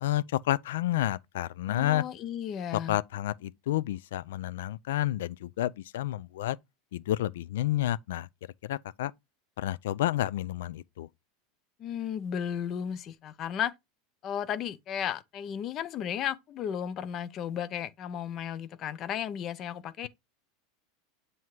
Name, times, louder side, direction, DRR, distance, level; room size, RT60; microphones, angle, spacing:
voice 1, 0.0-2.0 2.7-6.6 6.9-8.3 8.6-9.1 9.6-11.1, left 14 dB, 90° left, 0.4 m, -30 dB
voice 2, 1.7-3.0 11.8-13.7 14.2-20.1, left 9 dB, 25° left, 0.4 m, -34 dB
7.7 x 2.8 x 4.6 m
supercardioid pair, 175°, 0 cm